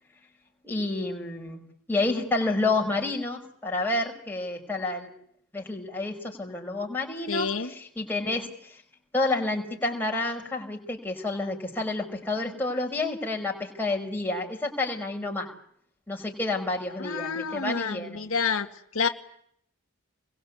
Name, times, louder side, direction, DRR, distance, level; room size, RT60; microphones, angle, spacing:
voice 1, 0.6-1.6 1.9-5.1 5.5-8.5 9.1-15.5 16.1-18.3, left 2 dB, 10° left, 0 dB, 5.3 m, -29 dB
voice 2, 7.3-7.7 17.0-18.7 18.9-19.1, left 5 dB, 80° left, 5 dB, 1.8 m, -28 dB
29.0 x 22.5 x 8.4 m, 0.69 s
head